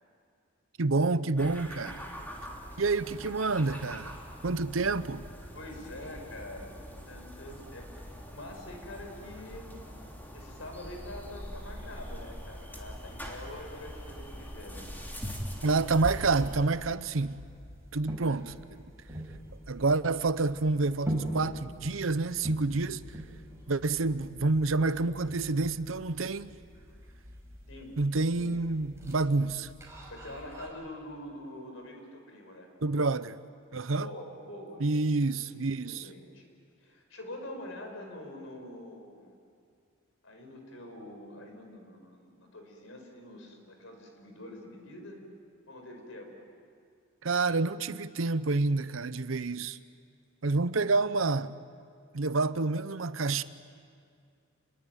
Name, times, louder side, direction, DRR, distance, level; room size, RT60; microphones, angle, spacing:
voice 1, 0.8-2.0 2.8-4.2 4.4-5.3 15.6-17.4 17.9-18.8 19.7-23.0 23.7-26.5 28.0-29.7 32.8-33.4 33.7-34.1 34.8-36.1 47.2-49.8 50.4-51.5 52.1-53.4, right 3 dB, 75° right, 0.8 m, -28 dB
sound 1, 1.4-16.6, equal, 10° left, 3.3 m, -43 dB
voice 2, 5.5-9.7 10.3-14.9 27.7-27.9 28.3-28.5 30.1-32.7 34.0-34.8 35.1-35.3 35.9-36.5 36.8-39.4 40.2-45.2 45.7-46.3, left 1 dB, 75° left, 5.2 m, -45 dB
sound 2, 10.9-30.7, equal, 15° right, 5.6 m, -44 dB
29.0 x 21.0 x 9.2 m
head